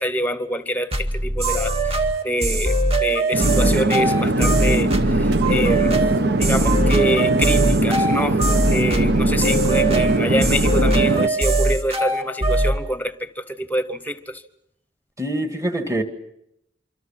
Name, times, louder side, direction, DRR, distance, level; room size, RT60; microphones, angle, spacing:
voice 1, 0.0-5.9 6.4-14.4, equal, 10° left, 12 dB, 1.0 m, -26 dB
sound 1, 0.9-12.8, right 1 dB, 30° right, 2.1 m, -21 dB
Conversation / Chatter / Fixed-wing aircraft airplane, 3.3-11.3, right 2 dB, 60° right, 1.0 m, -20 dB
voice 2, 15.2-16.0, right 1 dB, 15° right, 7 dB, 2.1 m, -25 dB
26.0 x 25.5 x 5.8 m, 0.80 s
head